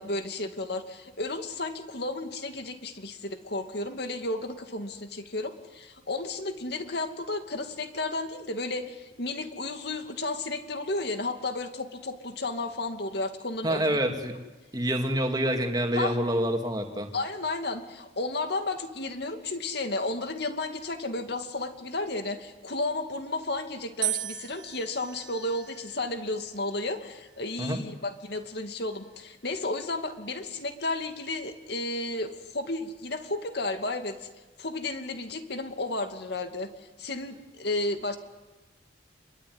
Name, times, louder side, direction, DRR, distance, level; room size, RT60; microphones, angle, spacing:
voice 1, 0.0-14.0 15.9-16.2 17.1-34.2 34.6-38.2, left 2 dB, 55° left, 7 dB, 2.4 m, -33 dB
voice 2, 13.6-14.3 14.7-17.1 27.6-27.8, equal, 20° right, 4 dB, 2.6 m, -27 dB
sound 1, 24.0-26.2 27.0-27.6, right 13 dB, 75° right, 1.1 m, -36 dB
27.5 x 22.5 x 9.6 m, 1.2 s
head